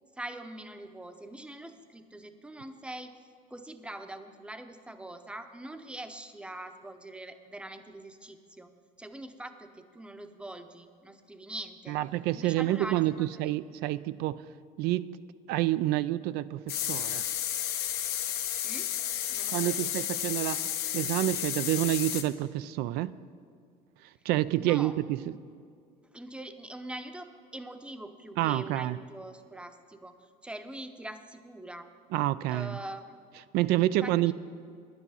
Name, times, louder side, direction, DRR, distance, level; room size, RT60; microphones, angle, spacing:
voice 1, 0.1-3.2 3.5-8.7 9.0-12.0 12.3-13.5 18.6-20.0 24.6-24.9 26.1-31.9 32.5-33.1 33.9-34.3, right 1 dB, 5° right, 8 dB, 0.7 m, -43 dB
voice 2, 11.9-14.4 14.8-15.1 15.5-17.2 19.5-20.6 20.9-23.1 24.3-25.3 28.4-29.0 32.1-32.8 33.5-34.3, right 15 dB, 75° right, 16 dB, 0.4 m, -28 dB
sound 1, 16.7-22.2, left 11 dB, 75° left, 0.9 m, -32 dB
9.9 x 9.6 x 5.6 m, 2.2 s
cardioid pair, 115°, 16 cm